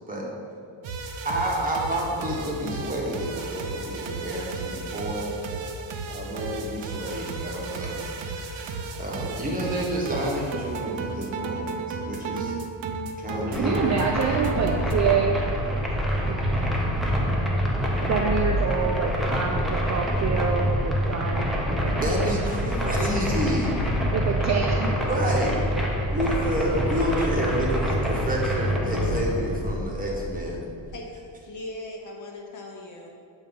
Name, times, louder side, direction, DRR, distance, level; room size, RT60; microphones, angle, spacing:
sound 1, 0.8-14.9, right 4 dB, 75° right, 0.7 m, -34 dB
voice 1, 1.2-5.3 6.1-11.6 12.1-12.5 13.2-13.8 22.0-23.8 25.1-25.6 26.1-30.6, right 1 dB, 20° right, -3 dB, 1.1 m, -29 dB
sound 2, 13.5-30.8, equal, ahead, 0.7 m, -26 dB
voice 2, 13.5-15.4 16.3-16.7 18.1-21.5 21.8-22.0 22.7-22.9 24.0-24.9, right 6 dB, 40° right, 1 dB, 0.4 m, -27 dB
voice 3, 30.9-33.1, left 1 dB, 40° left, 0 dB, 0.9 m, -39 dB
7.4 x 2.7 x 5.2 m, 2.3 s
cardioid pair, 120°, 46 cm